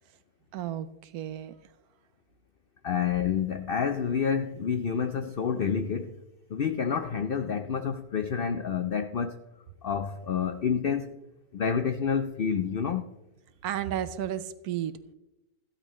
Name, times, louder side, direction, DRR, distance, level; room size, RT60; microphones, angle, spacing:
voice 1, 0.5-1.5 13.6-15.1, right 11 dB, 75° right, 13 dB, 1.1 m, -33 dB
voice 2, 2.8-6.2 6.5-9.4 9.8-11.1 11.5-13.1, left 7 dB, 75° left, 9 dB, 0.5 m, -28 dB
14.5 x 12.0 x 3.1 m, 0.97 s
omnidirectional pair, 1.7 m